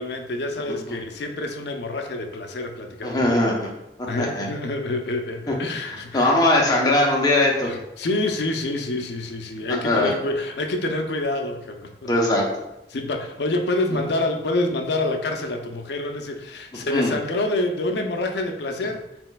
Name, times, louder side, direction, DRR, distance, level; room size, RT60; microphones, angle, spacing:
voice 1, 0.0-3.3 4.1-6.3 7.6-12.1 12.9-19.0, left 2 dB, 70° left, 4 dB, 0.5 m, -27 dB
voice 2, 3.0-3.7 4.1-4.5 5.5-5.6 6.1-7.7 9.7-10.1 12.1-12.4 16.9-17.1, left 1 dB, 20° left, -2 dB, 0.7 m, -20 dB
4.3 x 4.1 x 2.2 m, 0.89 s
head